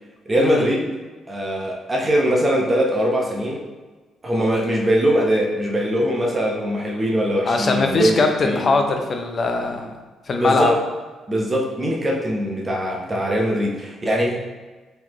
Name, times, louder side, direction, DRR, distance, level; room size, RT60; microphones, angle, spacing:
voice 1, 0.3-1.0 1.3-3.6 4.2-8.6 10.4-10.8 11.3-14.4, equal, 25° right, -2 dB, 0.8 m, -21 dB
voice 2, 7.5-9.9 10.3-10.7, left 3 dB, 45° left, 4 dB, 0.5 m, -21 dB
3.8 x 3.2 x 3.0 m, 1.3 s
cardioid pair, 90°, 0 cm